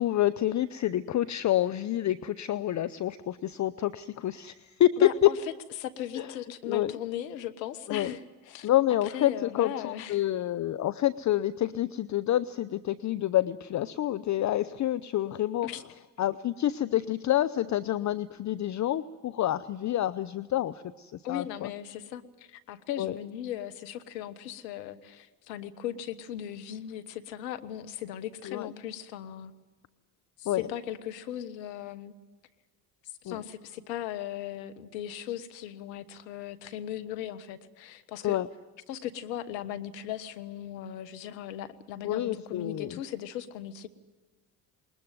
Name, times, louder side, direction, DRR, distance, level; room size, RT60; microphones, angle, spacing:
voice 1, 0.0-5.3 6.2-6.3 6.7-6.9 7.9-8.1 8.6-15.7 16.2-21.7 23.0-23.1 28.4-28.7 30.5-30.7 33.3-33.4 38.2-38.5 42.0-43.0, left 13 dB, 35° left, 15 dB, 0.7 m, -28 dB
voice 2, 5.0-5.4 5.8-8.7 9.0-10.2 15.6-15.8 21.2-29.5 30.4-32.1 33.2-38.4 38.9-43.9, left 11 dB, 80° left, 11 dB, 1.4 m, -38 dB
21.0 x 20.5 x 9.4 m, 1.3 s
hypercardioid pair, 70°, 50 cm